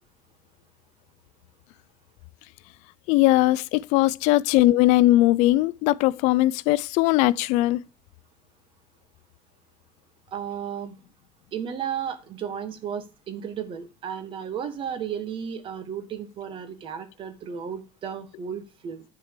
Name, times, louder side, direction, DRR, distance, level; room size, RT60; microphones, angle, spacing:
voice 1, 3.1-7.8, left 17 dB, 80° left, 0.4 m, -20 dB
voice 2, 10.3-11.0 11.5-19.0, right 8 dB, 50° right, 1.6 m, -34 dB
10.5 x 4.7 x 6.5 m
cardioid pair, 115°, 12 cm